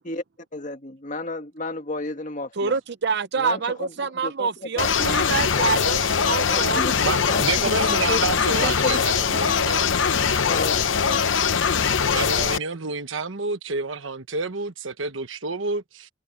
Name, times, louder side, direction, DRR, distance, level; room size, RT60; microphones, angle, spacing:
voice 1, 0.5-2.8 3.4-5.1 6.5-8.3 8.6-9.5 10.5-11.3, left 2 dB, 40° left, 1.9 m, -33 dB
voice 2, 2.6-6.9, right 5 dB, 60° right, 0.6 m, -26 dB
sound 1, 4.8-12.6, left 6 dB, 75° left, 0.8 m, -22 dB
voice 3, 7.0-10.4 12.1-16.1, right 4 dB, 80° right, 1.3 m, -29 dB
head